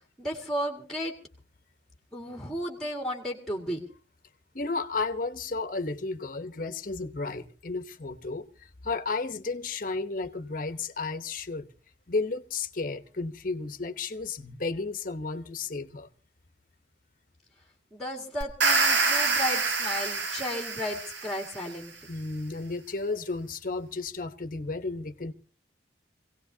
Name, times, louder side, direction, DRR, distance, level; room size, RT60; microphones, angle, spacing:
voice 1, 0.2-1.1 2.1-3.8 17.9-21.9, equal, ahead, 2.0 m, -34 dB
voice 2, 4.5-8.5 8.8-11.7 12.1-16.1 22.1-25.3, left 3 dB, 50° left, 1.0 m, -33 dB
sound 1, 18.4-21.6, right 4 dB, 85° right, 1.9 m, -26 dB
25.5 x 17.5 x 2.8 m
head